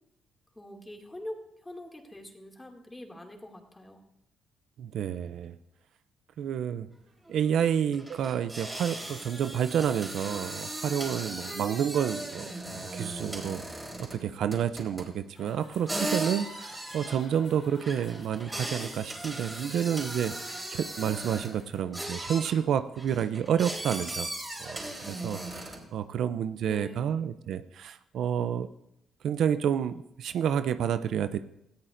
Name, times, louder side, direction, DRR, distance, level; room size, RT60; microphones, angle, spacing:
voice 1, 0.6-4.0 26.6-27.2, left 1 dB, 15° left, 2 dB, 2.3 m, -44 dB
voice 2, 4.8-5.6 6.4-6.9 7.3-13.7 14.0-24.3 24.6-24.8 25.0-28.7 29.2-31.4, right 8 dB, 70° right, 12 dB, 0.5 m, -29 dB
sound 1, 6.9-7.0 7.2-7.4 7.9-14.3 14.5-15.2 15.9-21.6 21.9-22.6 23.0-25.9, right 1 dB, 15° right, 3.8 m, -38 dB
sound 2, 15.3-21.8, left 3 dB, 50° left, 3.3 m, -55 dB
19.0 x 13.5 x 2.6 m, 0.82 s
cardioid pair, 90°, 0 cm